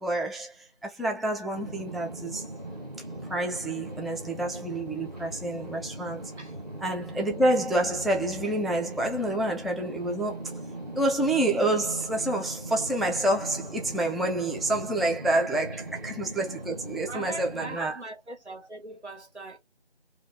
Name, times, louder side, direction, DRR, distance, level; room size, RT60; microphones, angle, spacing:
voice 1, 0.0-0.5 0.8-2.4 3.3-6.2 6.8-10.4 11.0-18.0, right 1 dB, ahead, 0.4 m, -28 dB
sound 1, 1.5-17.8, right 2 dB, 40° right, 0.9 m, -39 dB
voice 2, 17.0-19.6, right 2 dB, 85° right, 1.6 m, -40 dB
2.9 x 2.3 x 3.3 m
figure-of-eight pair, 170°, 33 cm